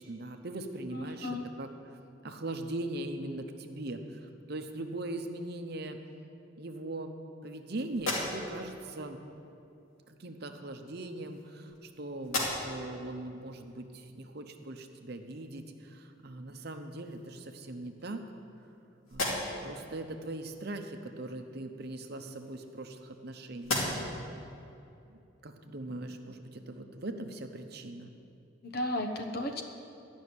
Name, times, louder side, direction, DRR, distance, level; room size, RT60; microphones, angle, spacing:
voice 1, 0.0-1.7 2.2-4.2 4.5-6.0 6.6-7.1 7.4-9.2 10.1-18.2 19.1-23.8 25.1-28.1, right 2 dB, 50° right, 6 dB, 0.8 m, -40 dB
voice 2, 0.9-1.4 28.6-29.6, left 1 dB, 50° left, 4 dB, 1.0 m, -34 dB
sound 1, 7.9-8.8 9.9-10.1 11.0-11.9 12.2-12.9 13.4-13.5 16.2-16.3 16.7-17.4 18.0-18.7 19.0-19.8 21.8-23.2 23.6-24.3, left 2 dB, 85° left, 2.9 m, -36 dB
12.5 x 6.3 x 9.6 m, 2.7 s
head